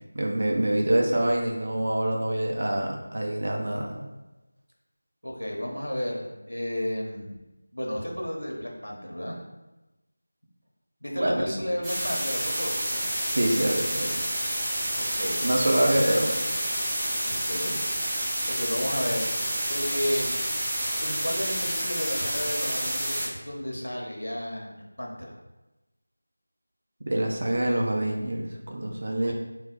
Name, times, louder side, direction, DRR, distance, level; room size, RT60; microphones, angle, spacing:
voice 1, 0.1-4.1 11.1-11.7 13.3-14.2 15.4-16.3 27.1-29.3, right 1 dB, 50° right, 0 dB, 0.7 m, -26 dB
voice 2, 5.2-7.4 7.7-9.4 11.0-13.0 15.0-16.3 17.2-19.3 19.7-20.4 21.0-25.4 29.2-29.3, equal, 90° left, 0 dB, 1.0 m, -33 dB
sound 1, 11.8-23.3, right 1 dB, 5° right, 0.6 m, -29 dB
3.9 x 2.3 x 3.8 m, 1.1 s
figure-of-eight pair, 170°, 0 cm